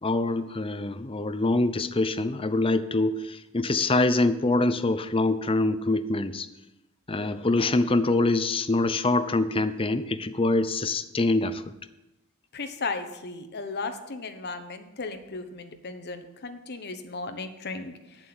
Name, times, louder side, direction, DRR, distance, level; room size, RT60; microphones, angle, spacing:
voice 1, 0.0-6.5 7.1-11.6, left 2 dB, 25° left, 12 dB, 0.6 m, -25 dB
voice 2, 12.5-18.3, left 3 dB, 50° left, 6 dB, 1.2 m, -36 dB
9.0 x 7.6 x 7.8 m, 0.92 s
head